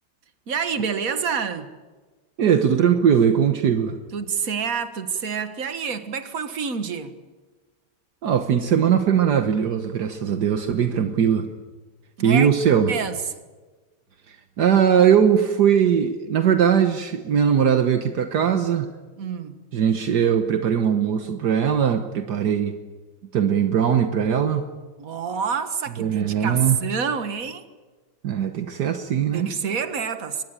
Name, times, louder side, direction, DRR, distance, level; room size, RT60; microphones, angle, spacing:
voice 1, 0.5-1.7 4.1-7.2 12.2-12.5 12.9-13.2 19.2-19.6 25.0-27.6 29.3-30.4, right 6 dB, 55° right, 9 dB, 2.0 m, -27 dB
voice 2, 2.4-3.9 8.2-11.5 12.2-12.9 14.3-18.9 19.7-22.7 23.3-24.7 26.0-26.8 28.2-29.5, right 8 dB, 70° right, 7 dB, 1.7 m, -20 dB
24.0 x 20.5 x 8.9 m, 1.3 s
omnidirectional pair, 1.9 m